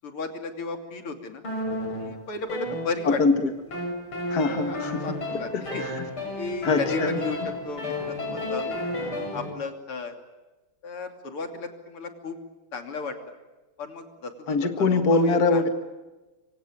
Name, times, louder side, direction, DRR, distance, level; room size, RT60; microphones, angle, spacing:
voice 1, 0.0-1.4 2.0-3.2 4.6-5.8 6.4-8.7 9.0-10.1 10.8-12.4 12.7-13.3 13.8-15.7, left 4 dB, 90° left, 5 dB, 3.9 m, -34 dB
sound 1, 1.4-3.3 3.7-9.5, left 1 dB, 75° left, 7.4 m, -32 dB
voice 2, 3.1-3.5 4.3-5.0 5.5-6.1 6.6-7.2 14.5-15.7, left 3 dB, 45° left, 7 dB, 2.2 m, -23 dB
26.5 x 25.0 x 8.9 m, 1.1 s
omnidirectional pair, 2.4 m